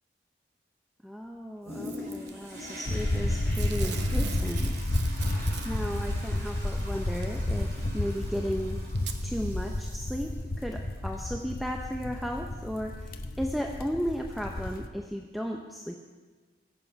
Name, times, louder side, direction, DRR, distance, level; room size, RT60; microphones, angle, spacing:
voice 1, 1.0-4.8 5.6-8.8 9.2-16.0, equal, ahead, 2 dB, 0.6 m, -35 dB
Toilet flush, 1.6-14.1 14.6-14.7, equal, 55° right, 3.8 m, -45 dB
Packing tape duct tape / Tearing, 1.8-2.3 3.5-6.1 7.2-7.3 8.2-8.3 9.0-9.2 9.9-10.0, right 6 dB, 80° right, 1.1 m, -41 dB
sound 1, 2.9-14.9, left 1 dB, 55° left, 0.8 m, -31 dB
22.5 x 7.6 x 5.8 m, 1.4 s
head